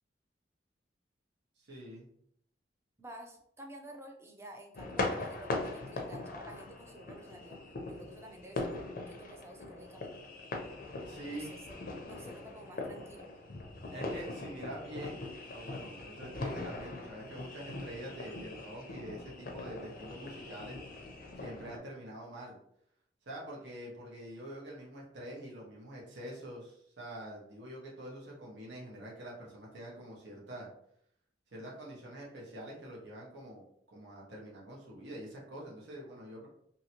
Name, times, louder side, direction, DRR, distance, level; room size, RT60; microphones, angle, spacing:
voice 1, 1.7-2.0 11.1-11.5 13.9-20.8 21.4-22.6 23.3-30.7 31.5-33.6 33.9-36.5, right 1 dB, 75° right, -4 dB, 1.0 m, -45 dB
voice 2, 3.0-7.6 7.9-10.3 11.3-11.8 12.1-13.3, right 1 dB, 15° right, 2 dB, 0.5 m, -51 dB
sound 1, 4.7-21.8, left 2 dB, 50° left, 0.5 m, -41 dB
2.8 x 2.7 x 2.8 m, 0.69 s
head